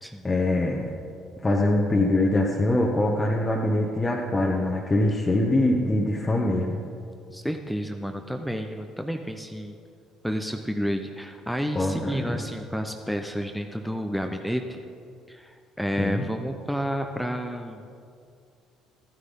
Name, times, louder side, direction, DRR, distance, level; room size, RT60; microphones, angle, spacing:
voice 1, 0.2-0.9 1.4-6.8 11.7-12.4 16.0-16.2, left 1 dB, 20° left, -1 dB, 1.3 m, -23 dB
voice 2, 7.3-9.8 10.2-14.8 15.3-18.0, equal, ahead, 5 dB, 0.8 m, -30 dB
14.5 x 9.9 x 5.4 m, 2.3 s
figure-of-eight pair, 50°, 0 cm